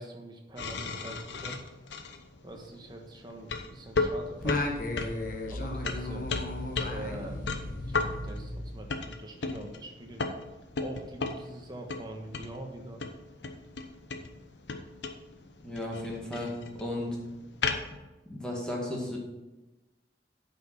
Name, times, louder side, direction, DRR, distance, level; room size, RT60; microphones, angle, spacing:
voice 1, 0.0-1.6 2.4-4.7 5.5-6.3 6.8-7.5 7.9-10.3 10.8-13.0, right 1 dB, 25° right, 2 dB, 1.3 m, -44 dB
sound 1, 0.6-18.0, left 3 dB, 90° left, 0.9 m, -36 dB
Singing, 4.4-9.2, left 2 dB, 50° left, 1.1 m, -35 dB
voice 2, 15.6-17.2 18.3-19.2, left 1 dB, 5° left, -3 dB, 2.1 m, -34 dB
9.0 x 5.5 x 5.7 m, 1.1 s
head